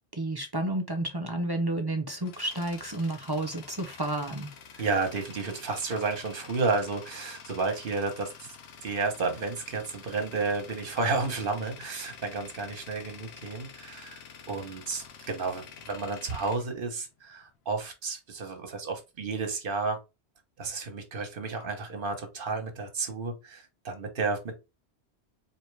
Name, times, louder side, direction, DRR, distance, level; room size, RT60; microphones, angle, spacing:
voice 1, 0.1-4.8, right 1 dB, 30° right, 0.4 m, -31 dB
Tools, 2.0-17.6, left 6 dB, 70° left, 0.9 m, -48 dB
voice 2, 4.8-8.5 8.8-20.0 20.6-24.6, right 4 dB, 55° right, 1.1 m, -32 dB
4.3 x 2.7 x 3.2 m
omnidirectional pair, 1.1 m